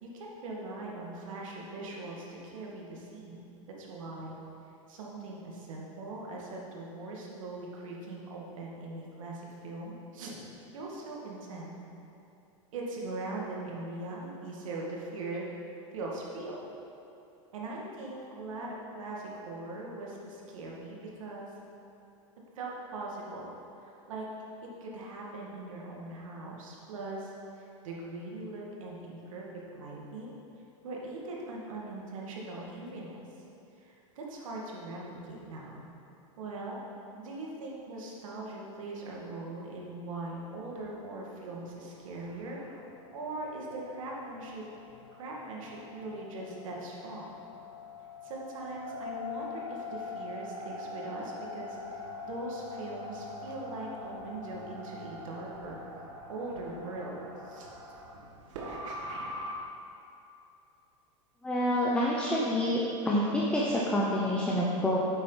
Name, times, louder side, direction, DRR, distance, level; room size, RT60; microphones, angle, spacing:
voice 1, 0.0-3.4 3.8-4.4 4.9-10.4 10.7-11.8 12.7-15.5 15.9-16.6 17.5-21.5 22.6-23.5 23.8-24.3 24.8-27.3 27.6-29.5 29.7-30.3 30.8-33.2 33.8-35.9 36.4-36.8 37.2-42.6 43.1-44.6 45.2-47.3 48.2-55.8 56.3-57.2 57.4-57.7, right 2 dB, 85° right, -3 dB, 2.0 m, -40 dB
sound 1, 41.6-59.6, left 2 dB, 70° right, 1.7 m, -43 dB
voice 2, 61.4-62.8 63.0-65.0, left 1 dB, 5° left, -5 dB, 0.8 m, -27 dB
8.8 x 7.5 x 4.0 m, 2.7 s
supercardioid pair, 145°, 17 cm